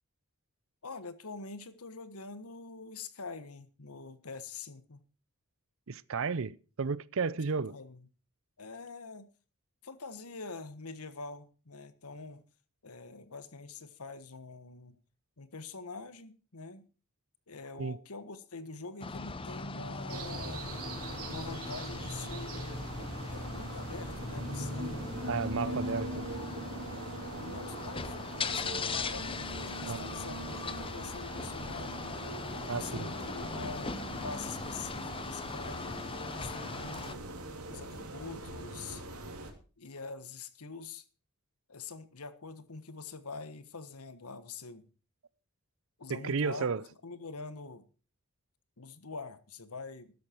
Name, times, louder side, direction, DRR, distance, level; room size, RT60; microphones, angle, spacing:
voice 1, 0.8-5.0 7.7-8.1 8.6-9.3 9.8-12.4 12.8-15.0 15.4-16.8 17.5-20.7 21.3-22.8 23.3-25.0 25.6-25.8 27.1-32.1 32.7-33.9 34.2-36.0 36.4-37.3 37.7-39.0 39.8-41.0 41.7-44.9 46.0-46.7 47.0-47.8 48.8-50.1, left 4 dB, 80° left, 1.4 m, -45 dB
voice 2, 5.9-7.8 17.8-18.0 25.3-26.1 29.8-30.0 32.7-32.9 46.1-46.8, right 5 dB, 60° right, 0.6 m, -32 dB
sound 1, 19.0-37.1, left 4 dB, 25° left, 0.7 m, -40 dB
sound 2, 20.1-39.5, right 2 dB, 80° right, 2.8 m, -42 dB
13.5 x 11.0 x 4.5 m
head